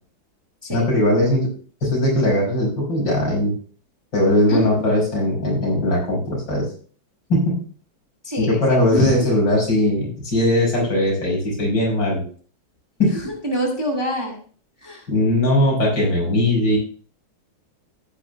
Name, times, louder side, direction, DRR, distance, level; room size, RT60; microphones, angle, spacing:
voice 1, 0.7-1.5 1.8-3.5 4.1-6.6 7.3-7.6 8.4-12.2 13.0-13.3 15.1-16.8, left 1 dB, 65° left, -3 dB, 6.0 m, -19 dB
voice 2, 4.5-4.8 8.2-9.1 13.1-14.4 14.8-15.1, equal, 15° right, 2 dB, 1.9 m, -26 dB
14.5 x 9.6 x 2.3 m, 0.42 s
omnidirectional pair, 2.1 m